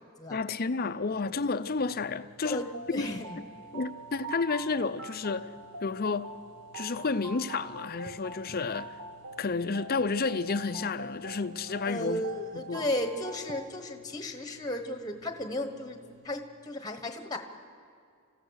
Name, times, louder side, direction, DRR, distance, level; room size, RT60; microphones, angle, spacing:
voice 1, 0.3-3.1 3.7-5.5 5.8-6.4 6.7-9.0 9.4-12.2 12.5-12.9, left 4 dB, 45° left, 0.6 m, -31 dB
sound 1, 1.1-16.3, right 1 dB, 60° right, 2.6 m, -59 dB
voice 2, 2.4-3.4 11.8-16.0 16.2-17.4, left 1 dB, 20° left, 1.2 m, -34 dB
sound 2, 2.4-13.7, right 3 dB, 85° right, 1.3 m, -44 dB
27.0 x 15.5 x 6.4 m
head